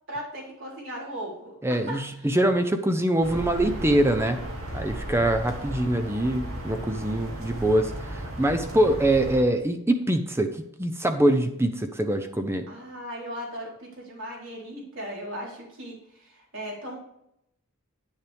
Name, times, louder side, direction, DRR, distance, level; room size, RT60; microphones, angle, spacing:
voice 1, 0.1-2.0 12.7-17.0, equal, 65° right, -3 dB, 3.8 m, -37 dB
voice 2, 1.6-4.4 4.7-12.7, right 1 dB, 10° right, 7 dB, 0.6 m, -24 dB
sound 1, 3.2-9.4, right 1 dB, 90° right, 2.1 m, -35 dB
9.4 x 7.2 x 3.4 m, 0.78 s
head